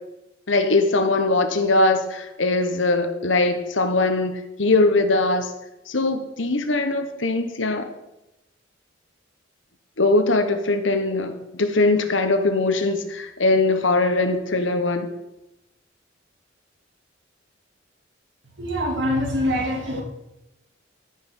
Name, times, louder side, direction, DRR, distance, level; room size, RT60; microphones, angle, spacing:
voice 1, 0.5-5.5 5.9-7.9 10.0-15.1, left 2 dB, 80° left, 8 dB, 1.3 m, -21 dB
voice 2, 18.6-20.0, equal, 70° right, 1 dB, 2.8 m, -24 dB
14.0 x 5.7 x 6.4 m, 0.93 s
head